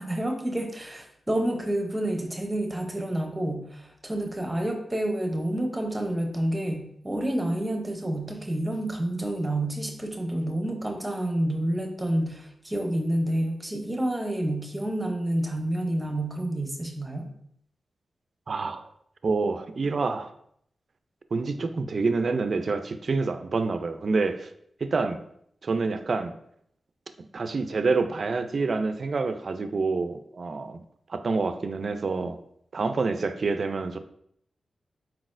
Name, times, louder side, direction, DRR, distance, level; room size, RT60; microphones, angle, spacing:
voice 1, 0.0-17.3, right 1 dB, 15° right, 4 dB, 0.6 m, -29 dB
voice 2, 18.5-18.9 19.2-20.3 21.3-24.5 24.8-25.2 25.6-26.3 27.3-30.8 31.1-32.4 32.7-34.0, right 4 dB, 50° right, 10 dB, 0.3 m, -27 dB
4.4 x 4.0 x 2.5 m, 0.69 s
wide cardioid pair, 120°, 0 cm